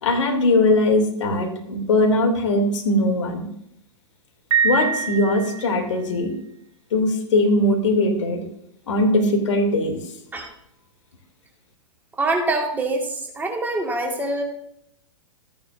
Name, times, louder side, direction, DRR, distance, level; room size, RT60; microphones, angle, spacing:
voice 1, 0.0-3.5 4.6-6.3 6.9-8.4 8.9-10.0, left 2 dB, 65° left, 3 dB, 2.6 m, -20 dB
Piano, 4.5-6.0, right 6 dB, 60° right, 1.8 m, -24 dB
voice 2, 12.2-13.1 13.4-14.4, right 2 dB, 10° right, 1 dB, 1.8 m, -24 dB
14.0 x 9.7 x 2.6 m, 0.75 s
figure-of-eight pair, 105°, 16 cm